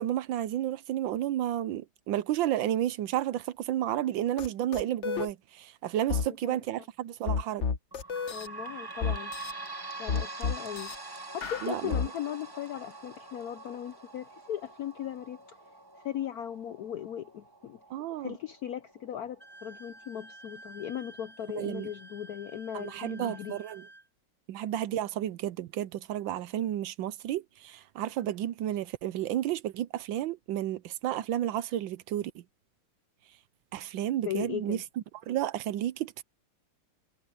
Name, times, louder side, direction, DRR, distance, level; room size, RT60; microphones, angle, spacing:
voice 1, 0.0-7.7 11.6-12.0 17.9-18.4 21.5-21.9 22.7-23.9 24.5-32.4 33.7-34.8 35.3-36.2, right 12 dB, 75° right, 1.3 m, -32 dB
sound 1, 4.4-4.5 4.7-5.3 6.1-6.3 7.3-8.5 9.0-9.5 10.1-10.9 11.4-12.1, left 5 dB, 45° left, 1.0 m, -30 dB
voice 2, 6.1-6.6 8.3-9.3 10.0-10.9 11.3-15.6 16.0-17.8 18.2-23.6 34.2-34.8, left 10 dB, 75° left, 0.8 m, -38 dB
sound 2, 7.9-21.1 21.6-21.7 22.0-22.1 22.9-23.0, right 3 dB, 30° right, 0.4 m, -45 dB
Wind instrument woodwind instrument, 19.4-24.1, right 2 dB, ahead, 0.8 m, -51 dB
omnidirectional pair, 2.2 m